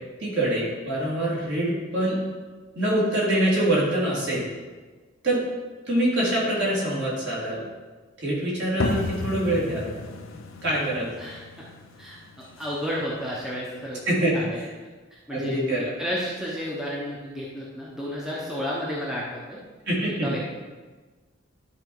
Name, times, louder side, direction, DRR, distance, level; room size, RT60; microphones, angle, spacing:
voice 1, 0.2-2.2 2.7-4.4 5.2-5.4 5.9-7.6 8.2-9.9 10.6-11.1 14.1-14.3 14.6-14.7 15.3-15.8 19.9-20.3, right 1 dB, 55° right, -6 dB, 2.9 m, -24 dB
sound 1, 8.8-14.3, left 2 dB, 75° left, 0.8 m, -33 dB
voice 2, 12.6-14.0 14.3-14.6 15.3-19.6 20.2-20.5, equal, ahead, -5 dB, 1.0 m, -31 dB
11.5 x 4.3 x 4.7 m, 1.4 s
head